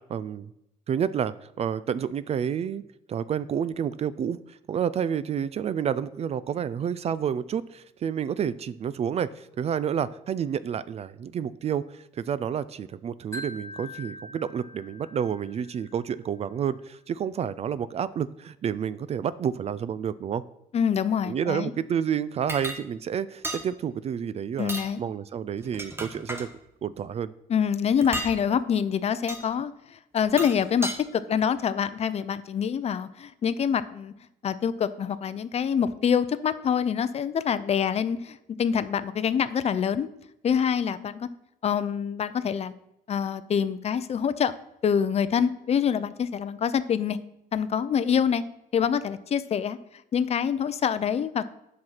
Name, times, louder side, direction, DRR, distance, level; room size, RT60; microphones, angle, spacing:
voice 1, 0.1-0.5 0.9-2.8 3.1-20.4 21.3-24.7 25.0-26.5 26.8-27.3, right 8 dB, 40° right, 17 dB, 0.4 m, -29 dB
Wind chime, 13.3-16.4, left 1 dB, 15° left, 1.4 m, -43 dB
voice 2, 20.7-21.7 24.6-25.0 27.5-34.1 34.4-40.1 40.4-41.3 41.6-42.7 43.1-44.5 44.8-47.2 47.5-48.4 48.7-49.8 50.1-51.5, left 7 dB, 40° left, 14 dB, 0.5 m, -26 dB
sound 1, 22.5-22.8 23.4-23.7 24.6-24.9 25.6-26.5 28.0-28.4 29.3-29.4 30.2-31.0, right 1 dB, 15° right, 1.3 m, -33 dB
7.8 x 6.0 x 5.6 m, 0.84 s
cardioid pair, 110°, 17 cm